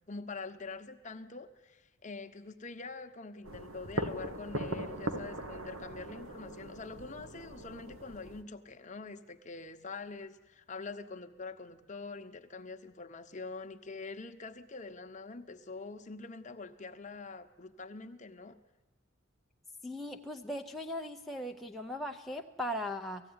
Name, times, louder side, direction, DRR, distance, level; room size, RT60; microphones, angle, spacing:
voice 1, 0.1-18.6, left 3 dB, 35° left, 7 dB, 1.0 m, -45 dB
sound 1, 3.4-8.4, right 1 dB, 85° right, 1.6 m, -40 dB
voice 2, 19.8-23.2, left 1 dB, ahead, 1 dB, 0.6 m, -38 dB
18.5 x 15.0 x 9.6 m, 1.2 s
head